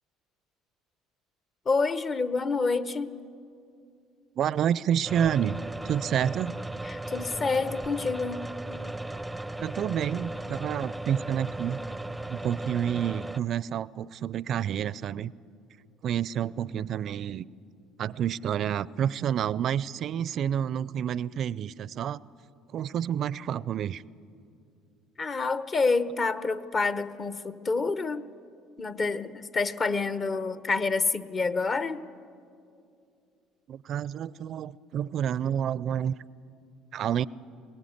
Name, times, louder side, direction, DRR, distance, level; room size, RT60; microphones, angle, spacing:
voice 1, 1.7-3.2 6.8-8.5 25.2-28.3 28.8-32.0, left 4 dB, 40° left, 14 dB, 0.9 m, -28 dB
voice 2, 4.4-6.6 9.6-11.8 12.3-15.3 16.0-17.4 18.0-22.2 22.7-24.0 33.7-36.2 36.9-37.3, right 9 dB, 55° right, 22 dB, 0.4 m, -29 dB
sound 1, 5.0-13.4, right 2 dB, 5° right, 0.6 m, -36 dB
21.5 x 18.5 x 8.0 m, 2.4 s
hypercardioid pair, 65°, 0 cm